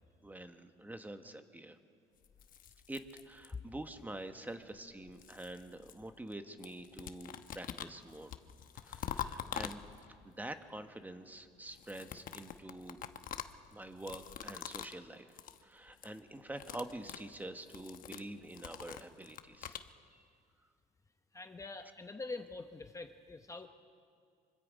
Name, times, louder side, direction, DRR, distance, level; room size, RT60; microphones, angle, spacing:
voice 1, 0.2-1.8 2.9-8.3 8.7-9.8 10.2-13.0 13.7-19.8 20.1-20.2, right 1 dB, 10° right, 8 dB, 1.3 m, -46 dB
sound 1, 2.2-3.8 4.7-6.3 6.6-10.3 11.7-15.0 15.3-15.6 15.9-16.2 16.5-19.9, left 9 dB, 55° left, 1.0 m, -45 dB
voice 2, 21.3-23.7, left 3 dB, 20° left, 7 dB, 0.9 m, -45 dB
25.0 x 24.5 x 5.3 m, 2.2 s
cardioid pair, 110°, 17 cm